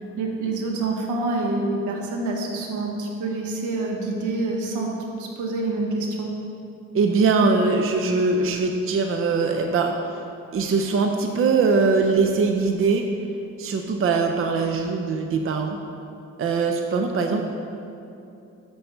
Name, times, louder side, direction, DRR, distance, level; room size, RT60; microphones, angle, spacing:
voice 1, 0.2-4.9 5.2-6.3, right 2 dB, 85° right, 0 dB, 1.3 m, -27 dB
voice 2, 6.9-10.2 10.5-13.1 13.6-15.8 16.4-17.4, right 4 dB, 45° right, 4 dB, 0.6 m, -21 dB
6.8 x 6.0 x 5.3 m, 2.7 s
cardioid pair, 90°, 30 cm